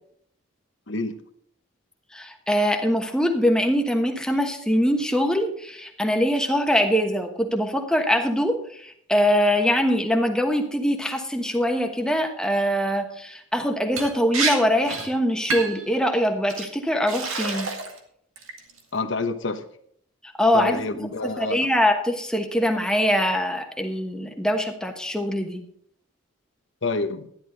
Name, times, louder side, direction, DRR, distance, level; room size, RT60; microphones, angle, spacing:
voice 1, 2.1-17.7 20.4-25.6, equal, 5° left, 4 dB, 1.2 m, -23 dB
Liquid, 14.0-14.1 14.3-14.6 14.8-15.1 15.5-15.8 16.5-16.7 17.1-18.0 18.4-18.8, right 4 dB, 90° right, 2.0 m, -27 dB
voice 2, 18.9-19.6 20.5-21.7 26.8-27.3, left 3 dB, 65° left, 7 dB, 1.0 m, -27 dB
13.0 x 10.5 x 3.9 m, 0.65 s
head